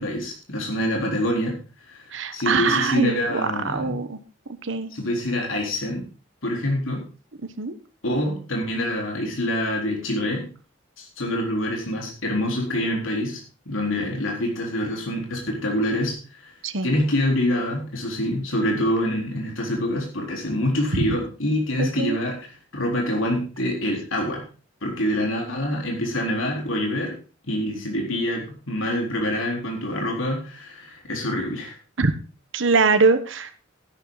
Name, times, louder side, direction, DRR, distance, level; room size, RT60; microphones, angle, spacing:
voice 1, 0.0-1.6 1.9-2.0 2.3-4.0 4.9-6.1 6.4-7.0 8.0-10.5 11.0-13.4 13.7-16.5 16.8-22.4 22.7-24.4 24.8-27.2 27.5-31.8, left 1 dB, 80° left, 0 dB, 4.2 m, -26 dB
voice 2, 2.1-3.2 3.7-4.2 4.6-4.9 7.6-7.7 16.6-16.9 20.9-21.1 21.8-22.2 32.0-32.1 32.5-33.6, right 4 dB, 70° right, 9 dB, 1.2 m, -22 dB
12.5 x 11.5 x 4.0 m, 0.35 s
head